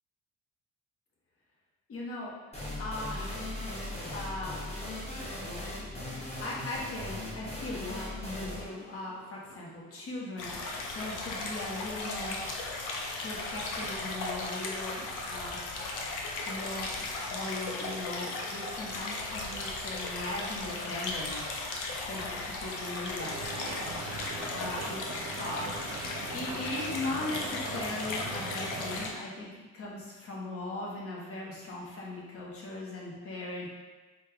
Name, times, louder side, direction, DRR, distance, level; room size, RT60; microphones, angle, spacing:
voice 1, 1.9-2.3 2.8-3.4 4.1-4.6 6.4-12.4 13.2-15.6 16.5-21.4 22.0-23.5 24.5-25.7 26.3-33.7, left 2 dB, 50° left, -4 dB, 1.1 m, -39 dB
sound 1, 2.5-10.0, left 1 dB, 20° left, 1.2 m, -39 dB
sound 2, 10.4-29.1, left 3 dB, 90° left, 0.7 m, -36 dB
sound 3, 23.2-29.1, right 4 dB, 60° right, 0.6 m, -41 dB
4.2 x 2.3 x 3.5 m, 1.2 s
cardioid pair, 90°, 30 cm